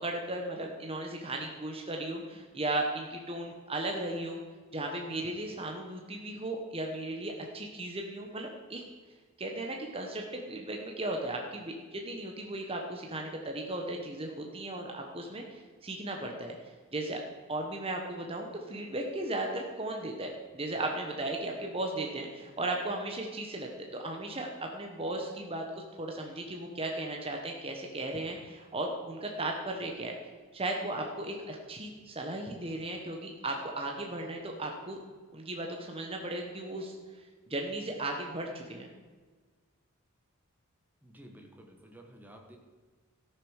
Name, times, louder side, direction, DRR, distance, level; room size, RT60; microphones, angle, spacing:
voice 1, 0.0-4.4 4.7-8.8 9.4-16.5 16.9-17.2 17.5-30.2 30.5-35.0 35.3-36.9 37.5-38.9, right 2 dB, 25° right, 1 dB, 1.1 m, -36 dB
voice 2, 41.0-42.6, right 1 dB, 10° right, 2 dB, 1.4 m, -52 dB
14.0 x 6.7 x 6.5 m, 1.4 s
head